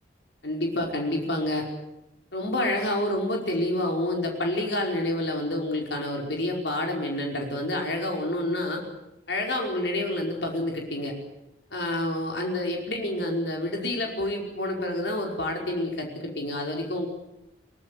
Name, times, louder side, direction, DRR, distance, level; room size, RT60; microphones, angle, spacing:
voice 1, 0.4-1.7 2.3-8.8 9.3-11.1 11.7-17.1, left 1 dB, 80° left, 1 dB, 5.1 m, -28 dB
22.5 x 19.5 x 9.4 m, 0.88 s
head